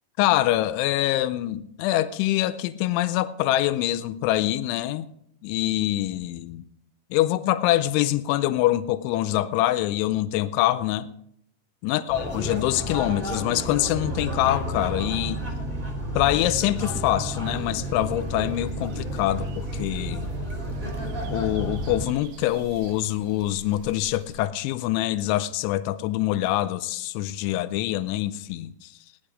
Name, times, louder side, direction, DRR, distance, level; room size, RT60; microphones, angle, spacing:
voice 1, 0.2-5.1 5.4-6.6 7.1-11.1 11.8-15.4 16.1-20.3 21.3-28.9, left 14 dB, 85° left, 2.8 m, -25 dB
sound 1, 12.1-22.0, right 1 dB, 20° right, 1.6 m, -31 dB
sound 2, 17.5-24.4, right 4 dB, 70° right, 2.2 m, -45 dB
17.5 x 9.9 x 4.9 m
omnidirectional pair, 5.9 m